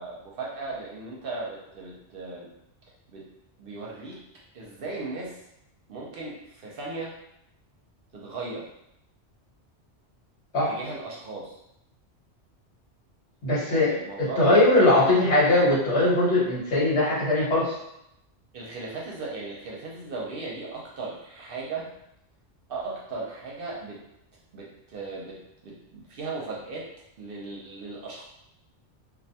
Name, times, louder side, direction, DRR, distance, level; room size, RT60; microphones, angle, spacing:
voice 1, 0.0-2.5 3.1-3.3 3.6-4.2 4.5-5.4 5.9-7.1 8.1-8.7 10.7-11.5 13.6-14.4 14.7-15.2 18.5-21.9 22.7-24.0 24.5-26.9 27.2-28.3, right 3 dB, 60° right, -3 dB, 0.7 m, -37 dB
voice 2, 13.4-13.9 14.2-17.7, left 2 dB, 75° left, -8 dB, 1.3 m, -20 dB
2.5 x 2.1 x 2.7 m, 0.81 s
omnidirectional pair, 1.2 m